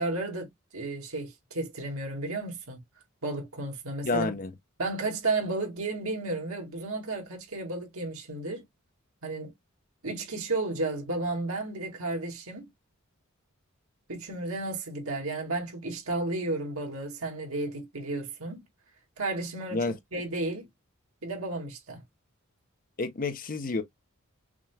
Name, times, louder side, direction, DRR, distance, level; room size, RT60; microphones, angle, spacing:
voice 1, 0.0-2.8 3.2-4.3 4.8-8.6 9.2-9.5 10.0-12.7 14.1-18.6 19.2-19.8 20.1-20.7 21.2-22.0, right 2 dB, 80° right, 2.1 m, -33 dB
voice 2, 4.0-4.5 19.7-19.9 23.0-23.8, left 3 dB, 40° left, 0.8 m, -29 dB
6.0 x 3.0 x 2.2 m
head